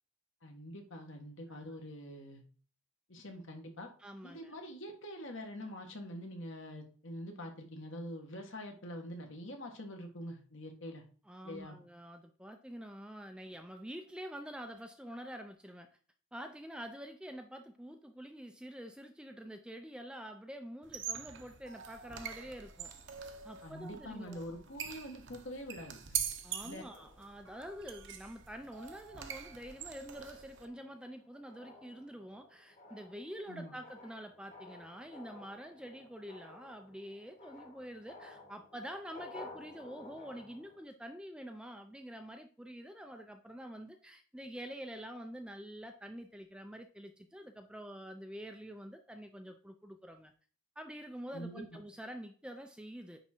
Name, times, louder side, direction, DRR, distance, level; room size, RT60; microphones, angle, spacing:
voice 1, 0.4-2.4 3.1-3.9 4.2-11.0 11.4-11.8 23.6-26.2 26.6-26.8 33.5-33.7 51.3-51.6, equal, 60° left, 3 dB, 1.6 m, -45 dB
voice 2, 4.0-4.6 11.3-15.9 16.3-22.9 23.4-24.4 26.4-50.3 50.8-53.2, equal, 5° right, 5 dB, 0.5 m, -47 dB
sound 1, 20.8-30.7, right 8 dB, 55° right, 0.9 m, -44 dB
sound 2, 23.0-24.8 25.5-25.7 26.0-26.4 26.8-28.0 28.5-28.8 29.2-40.8, left 2 dB, 35° left, 1.6 m, -55 dB
9.9 x 3.7 x 4.4 m, 0.42 s
head